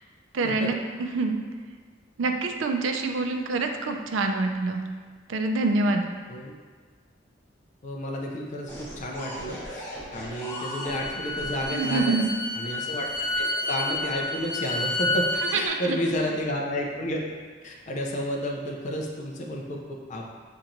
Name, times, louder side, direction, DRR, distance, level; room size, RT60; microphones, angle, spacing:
voice 1, 0.3-1.4 2.2-4.8 5.3-6.0 11.7-12.3 15.5-16.0, right 3 dB, 85° right, 4 dB, 0.4 m, -26 dB
voice 2, 7.8-12.2 12.5-13.1 13.4-15.3 15.5-17.2 17.6-20.2, equal, 40° left, -1 dB, 0.4 m, -31 dB
sound 1, 8.7-12.0 13.0-14.7 15.3-15.7, equal, 10° left, 0.9 m, -40 dB
Bowed string instrument, 10.2-15.6, left 1 dB, 60° left, 1.4 m, -30 dB
6.8 x 2.9 x 2.5 m, 1.5 s
head